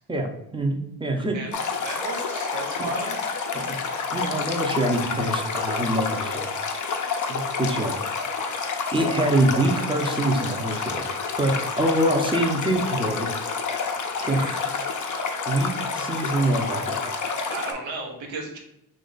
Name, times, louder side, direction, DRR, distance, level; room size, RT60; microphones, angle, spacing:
voice 1, 0.1-1.4 2.8-2.9 3.5-3.7 4.1-6.5 7.3-7.9 8.9-11.0 11.4-13.3 14.2-14.7 15.5-17.0, right 1 dB, 10° right, 3 dB, 0.7 m, -25 dB
Stream, 1.5-17.7, left 5 dB, 40° left, 0.6 m, -29 dB
voice 2, 1.8-3.2 14.2-14.5 17.5-18.6, right 3 dB, 70° right, 1 dB, 1.0 m, -34 dB
2.8 x 2.7 x 4.0 m, 0.83 s
supercardioid pair, 50°, 49 cm